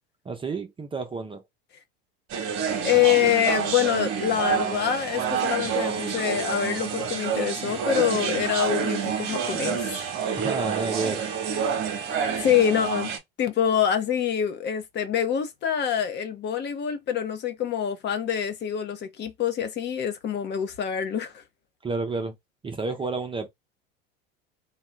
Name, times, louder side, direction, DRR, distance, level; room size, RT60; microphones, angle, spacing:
voice 1, 0.3-1.4 10.4-11.3 21.8-22.4 22.6-23.5, right 4 dB, 15° right, 0.6 m, -30 dB
sound 1, 2.3-13.2, right 7 dB, 45° right, 1.1 m, -28 dB
voice 2, 2.6-9.9 12.4-13.1 13.4-21.4, left 9 dB, 35° left, 0.8 m, -25 dB
2.7 x 2.3 x 3.1 m
supercardioid pair, 105°, 29 cm